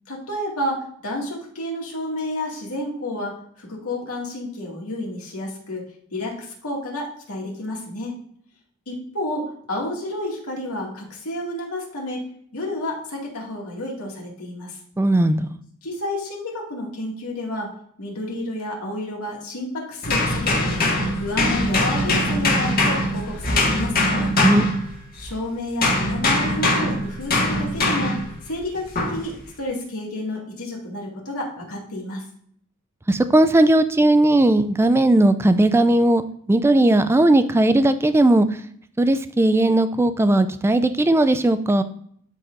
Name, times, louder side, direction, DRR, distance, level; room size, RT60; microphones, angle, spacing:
voice 1, 0.1-5.9 6.1-8.1 8.9-12.2 12.5-14.8 15.8-17.7 18.0-20.9 21.1-24.3 25.2-28.2 28.4-32.2, left 1 dB, 80° left, -2 dB, 2.2 m, -30 dB
voice 2, 15.0-15.4 24.4-24.7 33.1-38.5 39.0-41.8, right 1 dB, 10° right, 11 dB, 0.3 m, -17 dB
sound 1, 20.0-25.3 25.8-28.3 29.0-29.2, left 1 dB, 45° left, 1.8 m, -22 dB
12.0 x 4.2 x 2.6 m, 0.64 s
head